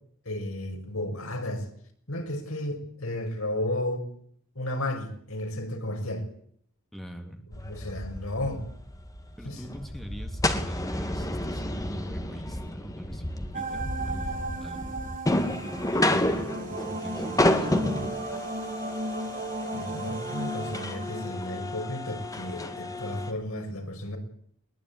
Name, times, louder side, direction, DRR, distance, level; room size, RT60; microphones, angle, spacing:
voice 1, 0.3-1.7 2.1-4.1 4.6-6.3 7.5-8.6 9.4-9.6 19.7-24.2, left 1 dB, 80° left, 5 dB, 6.0 m, -33 dB
voice 2, 6.9-7.4 9.4-17.9, equal, ahead, 4 dB, 3.0 m, -43 dB
sound 1, 7.5-23.3, left 1 dB, 15° left, 2.2 m, -31 dB
sound 2, 13.5-21.3, right 2 dB, 40° right, 4.2 m, -35 dB
22.0 x 20.5 x 9.8 m, 0.64 s
head